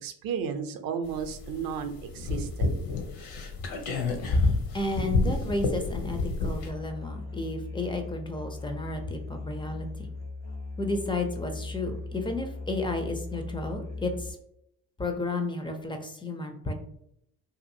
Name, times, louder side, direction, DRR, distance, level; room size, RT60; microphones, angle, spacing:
voice 1, 0.0-2.7, right 7 dB, 45° right, 7 dB, 0.6 m, -33 dB
sound 1, 1.1-6.7, left 3 dB, 70° left, 0.8 m, -29 dB
voice 2, 4.7-10.1 10.8-14.4 15.0-16.7, left 2 dB, 10° left, 5 dB, 0.3 m, -32 dB
Musical instrument, 6.4-14.3, left 3 dB, 85° left, 1.2 m, -38 dB
2.7 x 2.5 x 2.6 m, 0.75 s
hypercardioid pair, 55°, 49 cm